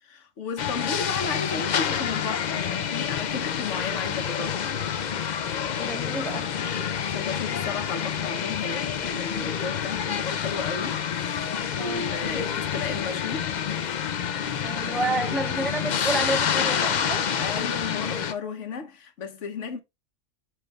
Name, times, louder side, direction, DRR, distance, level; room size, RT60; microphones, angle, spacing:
voice 1, 0.0-4.8 7.1-11.0 11.4-13.5 15.0-15.4 17.4-19.8, left 5 dB, 75° left, 1.3 m, -34 dB
sound 1, 0.6-18.3, left 8 dB, 50° left, 0.6 m, -28 dB
voice 2, 5.8-6.5 11.8-12.1 14.6-17.3, right 2 dB, ahead, 0.6 m, -30 dB
6.4 x 4.5 x 3.3 m
omnidirectional pair, 1.3 m